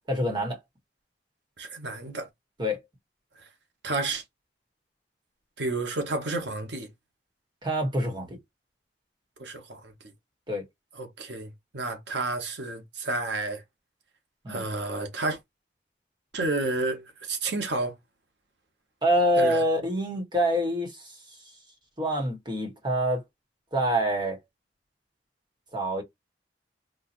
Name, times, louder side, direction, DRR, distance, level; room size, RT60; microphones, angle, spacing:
voice 1, 0.1-0.6 2.6-2.8 7.6-8.4 10.5-10.6 14.4-14.6 19.0-21.2 22.0-23.2 23.7-24.4 25.7-26.0, equal, 25° right, 1.3 m, -26 dB
voice 2, 1.6-2.3 3.8-4.2 5.6-6.9 9.4-9.9 10.9-13.6 14.5-15.4 16.3-17.9 19.4-19.7, right 2 dB, 85° right, 1.1 m, -31 dB
4.2 x 2.4 x 2.6 m
head